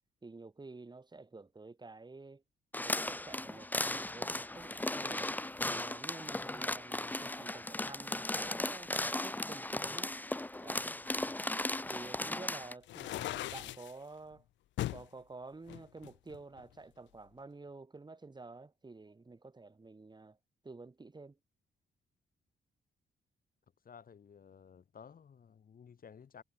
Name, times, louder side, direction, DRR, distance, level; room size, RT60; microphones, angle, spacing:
voice 1, 0.2-2.4 2.8-3.7 4.0-5.4 5.6-8.9 9.2-10.2 10.6-10.9 11.9-14.4 14.9-20.4 20.6-21.4, right 3 dB, 25° right, 6.5 m, -50 dB
sound 1, 2.7-12.7, left 1 dB, 10° left, 1.1 m, -37 dB
sound 2, 12.8-13.9 14.8-15.1 15.7-16.8, left 15 dB, 90° left, 0.5 m, -39 dB
voice 2, 23.8-26.4, left 7 dB, 50° left, 5.4 m, -55 dB
cardioid pair, 100°, 18 cm